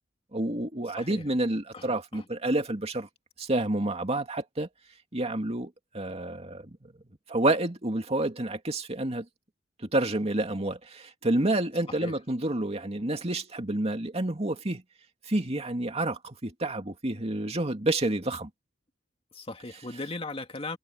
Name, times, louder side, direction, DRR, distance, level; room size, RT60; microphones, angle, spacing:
voice 1, 0.3-3.1 3.4-4.7 5.1-5.7 5.9-6.6 7.3-9.2 9.9-14.8 15.3-18.5, right 1 dB, 35° right, 2.5 m, -29 dB
voice 2, 1.0-1.3 1.7-2.3 11.9-12.2 19.3-20.8, left 2 dB, 30° left, 2.3 m, -38 dB
head